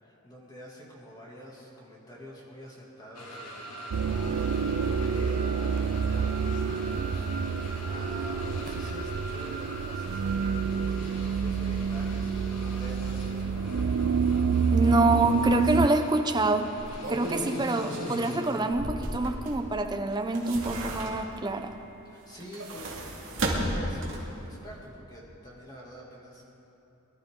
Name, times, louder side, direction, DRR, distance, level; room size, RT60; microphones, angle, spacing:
voice 1, 0.0-3.7 4.1-7.3 7.8-10.6 11.0-14.0 22.0-26.5, equal, 20° left, -4 dB, 2.6 m, -47 dB
sound 1, 3.1-18.4, equal, 85° left, 2.2 m, -42 dB
sound 2, 3.9-15.9, right 6 dB, 75° right, 0.4 m, -28 dB
voice 2, 14.7-16.7 17.1-21.7, right 2 dB, 20° right, 5 dB, 0.7 m, -26 dB
sound 3, 15.6-15.7 16.7-19.7 20.1-21.5 22.3-24.4 24.8-24.9, right 1 dB, 60° right, 2.4 m, -34 dB
22.5 x 12.0 x 3.8 m, 2.8 s
head